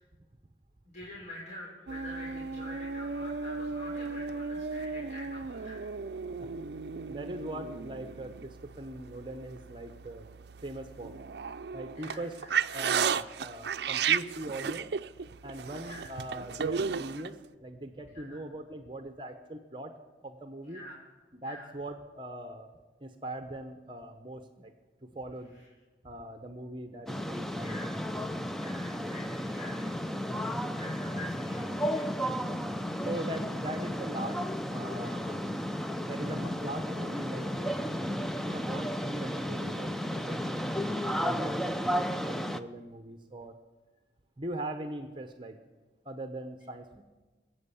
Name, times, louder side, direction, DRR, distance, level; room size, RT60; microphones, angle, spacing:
voice 1, 0.8-5.8 12.0-12.5 15.8-16.1 18.1-18.4 20.6-21.0 21.4-21.7 27.5-28.0 28.5-30.0 30.7-32.1, left 1 dB, 40° left, -5 dB, 3.9 m, -46 dB
sound 1, 1.9-17.3, right 6 dB, 70° right, 0.5 m, -35 dB
voice 2, 7.1-10.3 10.6-11.2 11.7-12.4 12.7-14.9 15.4-19.9 20.2-20.8 21.3-22.7 23.0-24.7 25.0-25.5 26.0-27.9 33.0-34.4 34.7-35.5 36.0-40.5 41.1-43.6 44.4-45.6 46.0-47.0, right 1 dB, 25° right, 7 dB, 0.9 m, -41 dB
sound 2, 27.1-42.6, equal, ahead, 0.5 m, -33 dB
21.5 x 7.9 x 8.4 m, 1.2 s
head